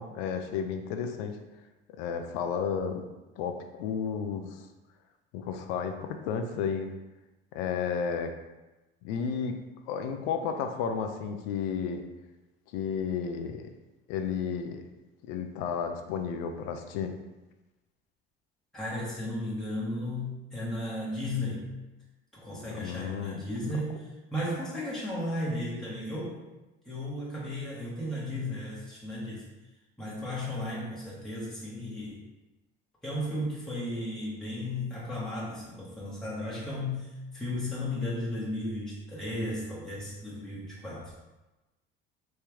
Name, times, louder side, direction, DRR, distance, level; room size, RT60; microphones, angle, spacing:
voice 1, 0.0-1.4 1.9-3.0 3.4-4.6 5.3-7.0 7.5-8.3 9.0-9.6 9.9-12.0 12.7-13.7 14.1-14.8 15.2-17.1 22.5-23.7, left 6 dB, 70° left, 6 dB, 0.5 m, -32 dB
voice 2, 18.7-21.7 22.3-26.4 26.8-29.4 30.0-32.2 33.0-41.1, left 1 dB, ahead, -8 dB, 1.2 m, -35 dB
3.3 x 2.8 x 3.4 m, 1.1 s
hypercardioid pair, 60°, 30 cm